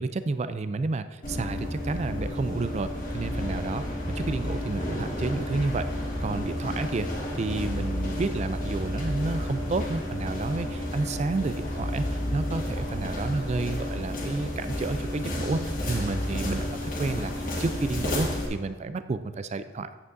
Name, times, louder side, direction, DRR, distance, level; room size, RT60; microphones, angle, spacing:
voice 1, 0.0-5.9 6.2-7.1 7.3-17.3 17.6-19.9, right 3 dB, 35° right, 12 dB, 0.3 m, -30 dB
sound 1, 1.2-18.5, left 1 dB, 40° left, 1.6 m, -31 dB
9.5 x 8.5 x 2.6 m, 1.4 s
head